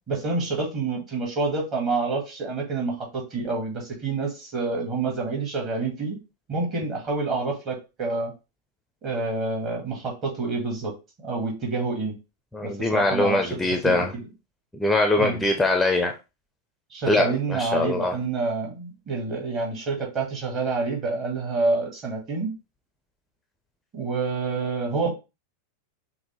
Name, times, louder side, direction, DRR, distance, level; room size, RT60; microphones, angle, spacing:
voice 1, 0.1-6.2 6.5-8.3 9.0-10.9 11.2-12.2 12.6-13.6 13.8-14.3 15.2-15.4 16.9-22.5 23.9-25.1, right 3 dB, 30° right, 0 dB, 1.7 m, -28 dB
voice 2, 12.5-14.1 14.7-16.1 17.1-18.1, left 2 dB, 5° left, 3 dB, 0.5 m, -22 dB
5.8 x 2.1 x 3.1 m, 0.28 s
figure-of-eight pair, 90°, 0 cm